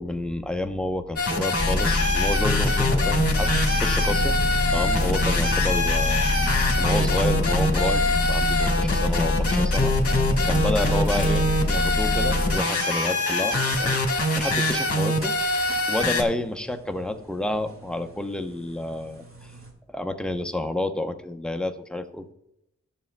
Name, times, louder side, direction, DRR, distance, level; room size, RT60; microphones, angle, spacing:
voice 1, 0.0-4.4 4.7-6.3 6.8-9.9 10.4-19.5 19.9-22.3, left 1 dB, 5° left, 5 dB, 0.8 m, -30 dB
sound 1, 1.2-16.2, left 1 dB, 50° left, 1.4 m, -24 dB
sound 2, 1.6-12.6, left 2 dB, 25° left, 2.4 m, -25 dB
sound 3, 3.1-19.7, right 3 dB, 45° right, 2.0 m, -42 dB
11.0 x 6.9 x 2.2 m, 0.83 s
cardioid pair, 40°, 30 cm